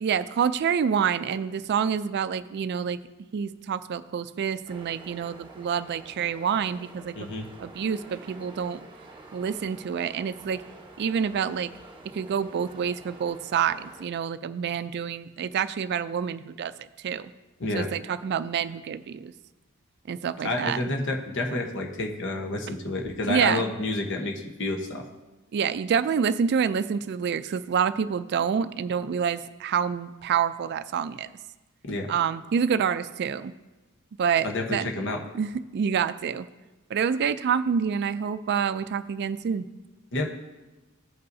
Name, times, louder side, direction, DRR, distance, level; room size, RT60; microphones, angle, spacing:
voice 1, 0.0-3.0 3.3-8.8 9.3-10.6 11.0-11.7 12.1-17.3 17.7-19.3 20.1-20.8 23.2-23.6 25.5-31.3 32.1-33.5 34.2-34.9 35.3-36.5 36.9-39.7, right 7 dB, 50° right, 13 dB, 0.3 m, -27 dB
sound 1, 4.7-14.1, right 2 dB, 25° right, 0.9 m, -48 dB
voice 2, 7.1-7.5 17.6-17.9 20.4-25.1 31.8-32.1 34.4-35.2 40.1-40.3, left 2 dB, 60° left, 3 dB, 1.0 m, -29 dB
15.5 x 5.5 x 2.7 m, 1.2 s
head